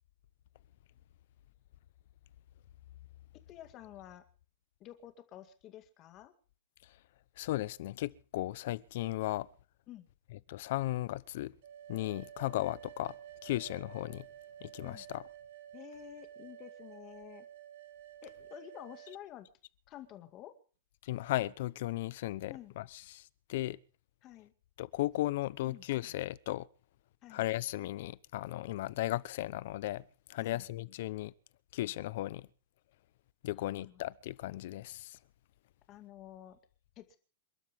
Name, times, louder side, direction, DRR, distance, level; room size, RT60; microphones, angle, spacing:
voice 1, 3.5-4.2 4.8-6.3 9.9-10.1 14.8-15.1 15.7-17.5 18.2-19.5 19.9-20.5 22.5-22.7 24.2-24.5 25.7-25.8 27.2-27.4 30.4-30.7 33.6-34.0 35.9-36.6 37.0-37.2, left 12 dB, 20° left, 2.1 m, -50 dB
voice 2, 7.4-9.5 10.5-11.5 11.9-13.1 13.4-14.3 14.6-15.2 21.0-23.2 23.5-23.8 24.8-26.7 27.3-30.0 30.3-31.3 31.7-32.5 33.4-35.2, left 16 dB, 40° left, 0.8 m, -36 dB
sound 1, 11.6-19.2, right 11 dB, 50° right, 1.9 m, -51 dB
28.0 x 12.5 x 3.6 m
supercardioid pair, 180°, 0 cm